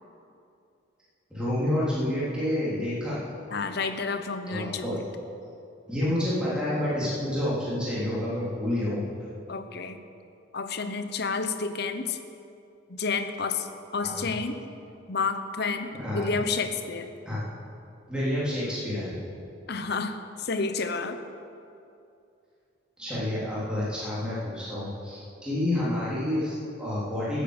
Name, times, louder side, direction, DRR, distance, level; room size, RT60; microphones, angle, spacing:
voice 1, 1.3-3.2 4.5-5.0 5.9-9.0 14.0-14.3 15.9-16.3 17.2-17.4 18.1-19.2 23.0-27.4, left 1 dB, 5° right, -9 dB, 3.4 m, -29 dB
voice 2, 3.5-4.9 9.5-10.0 10.5-12.2 12.9-14.6 15.1-17.1 19.7-21.2, left 4 dB, 50° left, 9 dB, 0.8 m, -30 dB
15.0 x 8.2 x 8.0 m, 2.6 s
head